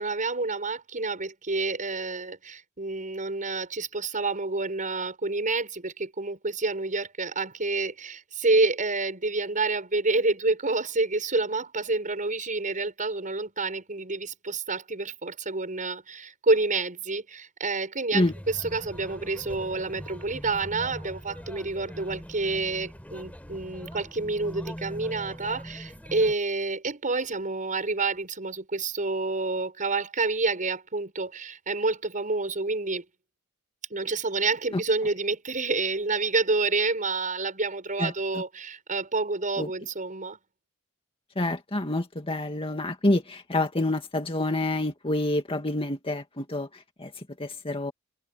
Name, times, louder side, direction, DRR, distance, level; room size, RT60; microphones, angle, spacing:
voice 1, 0.0-33.0 33.9-40.4, right 3 dB, 40° right, 6.2 m, -28 dB
sound 1, 18.2-26.3, equal, 5° left, 3.4 m, -41 dB
voice 2, 38.0-38.4 39.6-39.7 41.4-47.9, left 2 dB, 25° left, 2.1 m, -28 dB
head